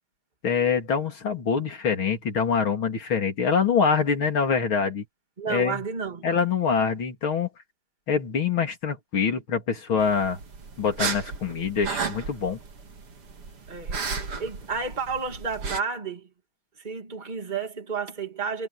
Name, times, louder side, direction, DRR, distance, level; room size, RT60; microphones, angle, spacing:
voice 1, 0.4-5.0 5.5-5.8 6.2-7.5 8.1-10.4 10.8-12.6, left 6 dB, 65° left, 4.0 m, -25 dB
voice 2, 5.4-6.2 13.7-16.3 16.8-18.7, right 5 dB, 20° right, 2.3 m, -31 dB
sound 1, 10.0-15.8, right 5 dB, 90° right, 3.7 m, -34 dB
omnidirectional pair, 2.4 m